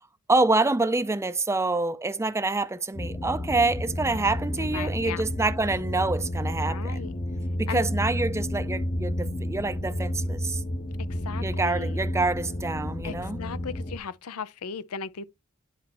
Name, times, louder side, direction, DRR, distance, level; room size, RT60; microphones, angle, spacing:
voice 1, 0.3-7.1 7.6-10.6 11.4-13.4, right 3 dB, 15° right, 0.5 m, -26 dB
sound 1, 3.0-14.0, left 1 dB, 25° left, 0.8 m, -31 dB
voice 2, 4.6-5.3 6.6-7.1 7.7-7.9 11.2-12.0 13.0-15.2, left 6 dB, 80° left, 0.6 m, -37 dB
10.5 x 4.4 x 3.0 m
head